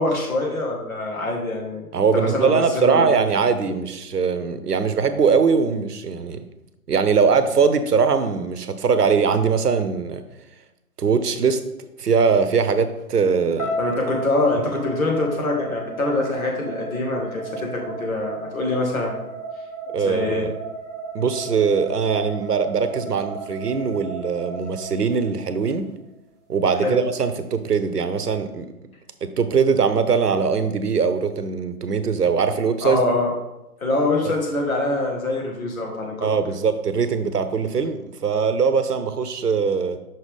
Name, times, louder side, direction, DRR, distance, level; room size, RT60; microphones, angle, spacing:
voice 1, 0.0-3.2 13.8-19.2 20.0-20.5 26.8-27.0 32.8-33.3 33.8-36.3, left 2 dB, 65° left, 0 dB, 1.9 m, -24 dB
voice 2, 1.9-6.4 6.9-10.2 11.0-11.6 12.0-13.7 19.9-20.5 21.1-25.9 26.5-28.7 29.2-33.0 36.2-40.0, right 5 dB, 85° right, 11 dB, 0.8 m, -21 dB
sound 1, 13.6-25.7, right 3 dB, 15° left, 1.2 m, -34 dB
5.8 x 5.6 x 3.5 m, 0.94 s
figure-of-eight pair, 145°, 46 cm